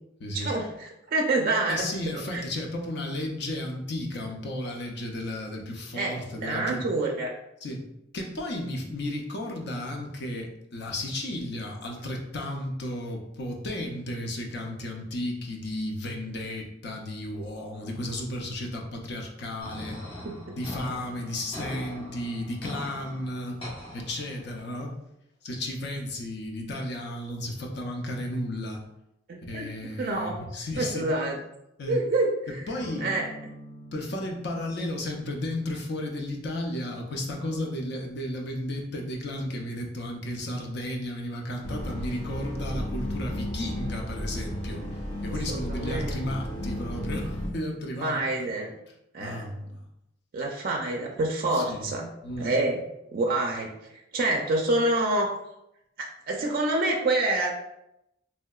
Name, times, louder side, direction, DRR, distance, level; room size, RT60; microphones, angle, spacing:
voice 1, 0.3-2.4 5.9-7.3 20.2-20.6 29.3-30.4 30.8-31.4 31.9-32.7 33.0-33.3 45.5-46.2 48.0-48.7 49.1-49.5 50.3-52.1 52.4-52.8 53.1-55.3 56.3-57.5, right 2 dB, 50° right, 0 dB, 0.4 m, -27 dB
voice 2, 1.7-6.8 7.6-7.9 8.1-20.0 20.6-23.6 23.9-25.0 25.4-28.8 29.5-31.1 31.8-32.0 32.7-33.1 33.9-44.8 45.2-48.2 49.2-49.8 51.5-51.9 52.2-52.5, left 1 dB, 60° left, 1 dB, 0.6 m, -33 dB
sound 1, 19.6-24.6, left 1 dB, 30° left, 0.9 m, -41 dB
sound 2, 32.8-40.6, equal, 10° left, 0.5 m, -49 dB
sound 3, 41.6-47.5, equal, 85° left, 1.2 m, -33 dB
3.2 x 2.7 x 2.3 m, 0.83 s
head